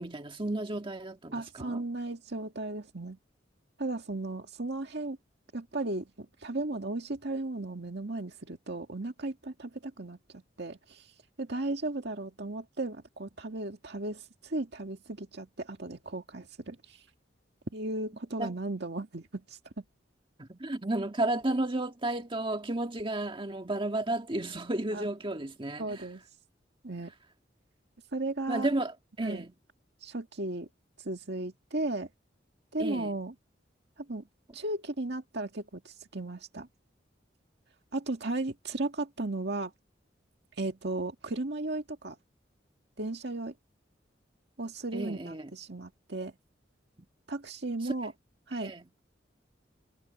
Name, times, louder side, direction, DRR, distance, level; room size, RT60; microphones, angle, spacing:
voice 1, 0.0-1.8 18.4-18.5 20.4-26.0 28.5-29.5 32.8-33.1 44.9-45.5 47.8-47.9 48.5-48.8, right 2 dB, 30° right, 1.7 m, -33 dB
voice 2, 1.3-3.2 3.8-5.2 5.5-11.1 11.4-17.0 17.7-19.8 24.9-25.1 25.8-26.2 26.8-27.1 28.1-28.7 29.2-29.4 30.0-30.7 31.0-32.1 32.7-33.3 34.0-34.2 34.5-36.7 37.9-39.7 40.6-42.2 43.0-43.5 44.6-46.3 47.3-48.1 48.5-48.7, right 2 dB, 65° right, 2.1 m, -35 dB
head